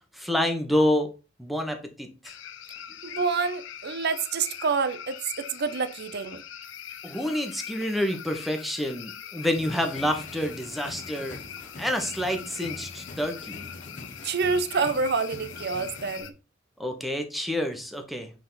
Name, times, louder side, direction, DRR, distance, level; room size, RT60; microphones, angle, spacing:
voice 1, 0.1-1.1 1.4-2.3 7.0-11.4 11.8-13.7 16.8-18.3, left 1 dB, ahead, 1.0 m, -28 dB
sound 1, 2.2-16.3, left 9 dB, 70° left, 0.6 m, -42 dB
voice 2, 3.0-6.4 14.2-16.3, right 5 dB, 55° right, 0.7 m, -27 dB
sound 2, 9.6-16.2, left 2 dB, 40° left, 1.1 m, -44 dB
6.7 x 3.6 x 3.9 m
head